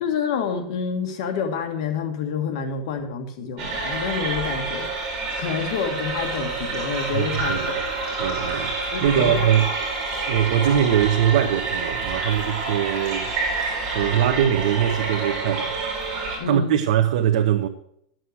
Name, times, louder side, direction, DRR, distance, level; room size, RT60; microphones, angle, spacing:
voice 1, 0.0-4.9 5.4-7.8 8.9-9.5 16.4-16.8, left 6 dB, 55° left, 1.5 m, -28 dB
sound 1, 3.6-16.4, right 3 dB, 35° right, 4.9 m, -28 dB
voice 2, 7.1-7.8 8.2-9.7 10.3-13.3 13.6-15.7 16.4-17.7, right 10 dB, 65° right, 1.2 m, -22 dB
12.5 x 7.8 x 6.4 m
supercardioid pair, 170°, 4 cm